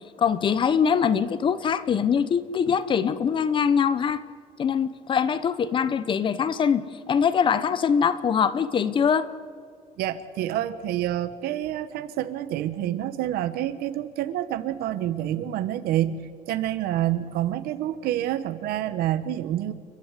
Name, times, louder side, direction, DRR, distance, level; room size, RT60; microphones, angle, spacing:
voice 1, 0.2-4.2 4.6-9.3, left 7 dB, 30° left, 15 dB, 0.9 m, -23 dB
voice 2, 10.0-19.7, right 12 dB, 80° right, 12 dB, 1.0 m, -28 dB
29.5 x 11.5 x 8.2 m, 2.1 s
cardioid pair, 165°, 16 cm